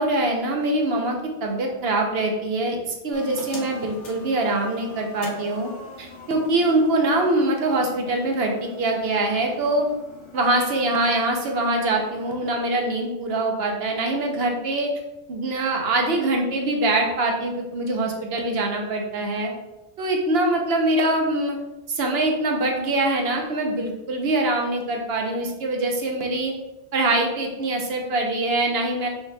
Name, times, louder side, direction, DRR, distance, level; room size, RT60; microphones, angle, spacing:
voice 1, 0.0-5.7 6.0-9.9 10.3-14.9 15.3-19.5 20.0-21.6 21.9-26.5 26.9-29.1, right 2 dB, 60° right, 2 dB, 0.9 m, -23 dB
sound 1, 3.1-12.3, left 3 dB, 75° left, 1.1 m, -43 dB
5.6 x 3.1 x 2.2 m, 0.96 s
omnidirectional pair, 1.2 m